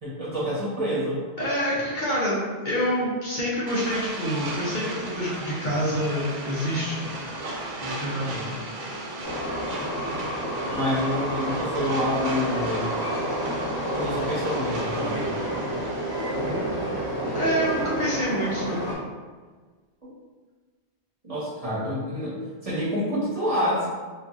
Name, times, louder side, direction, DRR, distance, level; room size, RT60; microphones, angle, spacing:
voice 1, 0.0-1.2 8.1-8.6 10.7-12.9 13.9-15.2 20.0-20.1 21.2-23.9, equal, 35° right, -9 dB, 0.9 m, -28 dB
voice 2, 1.4-7.0 7.8-8.3 16.9-17.1 17.3-18.8, equal, 50° left, -7 dB, 0.8 m, -27 dB
sound 1, 3.7-16.7, right 2 dB, 55° right, 0.6 m, -36 dB
Train, 9.2-19.0, right 1 dB, 20° left, 1.4 m, -29 dB
4.1 x 2.4 x 2.4 m, 1.4 s
omnidirectional pair, 1.1 m